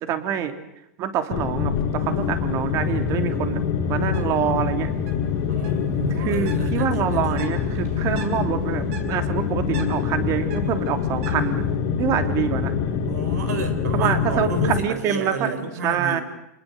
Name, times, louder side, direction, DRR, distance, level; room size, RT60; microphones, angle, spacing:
voice 1, 0.0-0.5 1.0-3.6 3.9-4.9 6.2-11.7 12.0-12.7 13.9-15.5 15.8-16.2, right 9 dB, 35° right, 8 dB, 3.2 m, -26 dB
sound 1, 1.3-14.8, left 7 dB, 45° left, 3.0 m, -25 dB
Bird, 4.0-11.8, right 6 dB, 60° right, 7.2 m, -42 dB
voice 2, 5.5-7.5 13.1-16.2, right 4 dB, 85° right, 8 dB, 4.6 m, -31 dB
27.5 x 20.5 x 8.0 m, 0.84 s
hypercardioid pair, 135°, 9 cm